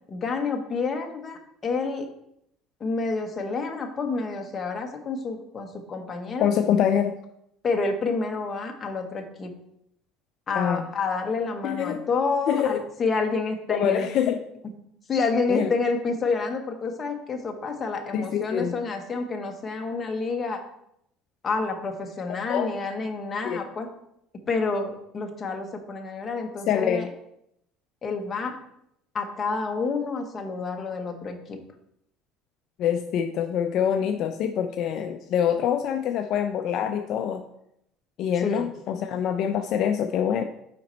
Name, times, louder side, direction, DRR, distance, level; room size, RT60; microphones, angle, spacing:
voice 1, 0.1-2.1 2.8-6.5 7.6-9.5 10.5-14.1 15.1-20.6 21.4-23.9 24.5-27.1 28.0-28.6 29.1-31.6 38.4-38.7, left 4 dB, 25° left, 3 dB, 1.0 m, -28 dB
voice 2, 6.4-7.1 10.5-10.8 11.6-12.0 12.5-12.8 13.7-14.4 15.5-15.7 18.1-18.7 22.5-22.7 23.4-23.6 26.7-27.1 32.8-37.4 38.2-40.4, left 8 dB, 50° left, 6 dB, 0.4 m, -25 dB
5.7 x 5.1 x 4.4 m, 0.76 s
cardioid pair, 145°, 0 cm